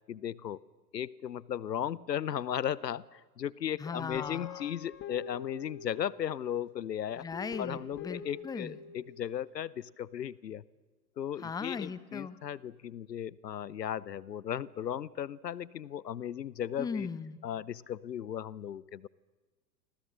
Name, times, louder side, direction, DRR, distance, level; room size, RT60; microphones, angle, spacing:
voice 1, 0.1-0.6 0.9-7.2 7.6-10.6 11.2-17.1 17.4-19.1, left 10 dB, 75° left, 24 dB, 0.8 m, -36 dB
voice 2, 3.8-4.7 7.2-8.7 11.4-12.4 16.8-17.4, left 5 dB, 10° left, 16 dB, 0.9 m, -38 dB
Guitar, 4.1-6.6 7.3-9.3, left 6 dB, 25° left, 1.7 m, -45 dB
29.5 x 25.0 x 6.3 m, 1.3 s
figure-of-eight pair, 105°, 50 cm